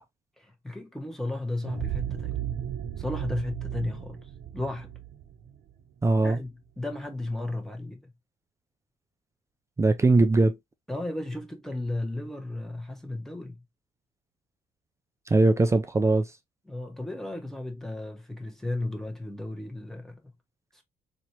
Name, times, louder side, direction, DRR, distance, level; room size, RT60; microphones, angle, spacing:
voice 1, 0.4-2.4 3.0-4.9 6.2-8.1 10.9-13.6 16.7-20.3 20.7-20.8, left 2 dB, ahead, 1.2 m, -34 dB
sound 1, 1.6-6.4, right 11 dB, 55° right, 0.9 m, -35 dB
voice 2, 6.0-6.4 9.8-10.6 15.3-16.3, right 2 dB, 15° right, 0.5 m, -21 dB
4.2 x 2.8 x 2.9 m
cardioid pair, 110°, 17 cm